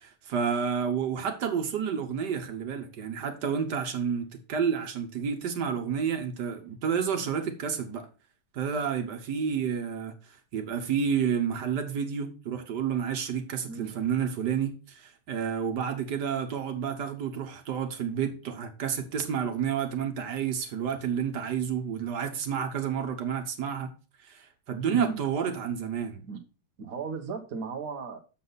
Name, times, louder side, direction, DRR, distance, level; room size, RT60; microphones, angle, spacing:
voice 1, 0.0-8.1 8.5-23.9 24.2-26.2, right 7 dB, 80° right, 1.8 m, -30 dB
voice 2, 24.8-25.2 26.3-26.4 26.8-28.2, right 5 dB, 60° right, 1.5 m, -35 dB
7.3 x 6.9 x 4.0 m
omnidirectional pair, 1.8 m